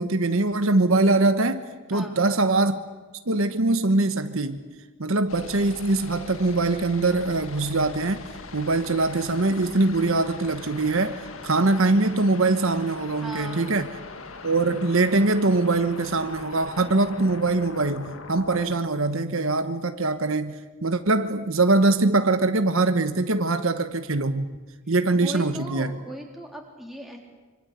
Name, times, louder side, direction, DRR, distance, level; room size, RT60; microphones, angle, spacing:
voice 1, 0.0-2.8 3.3-4.6 5.0-8.2 8.5-13.9 14.4-24.5 24.9-26.0, right 2 dB, 70° right, 1.2 m, -23 dB
sound 1, 5.3-18.8, left 3 dB, 70° left, 1.8 m, -41 dB
voice 2, 13.2-13.8 25.1-27.2, equal, ahead, 3.9 m, -38 dB
25.5 x 25.0 x 8.2 m
head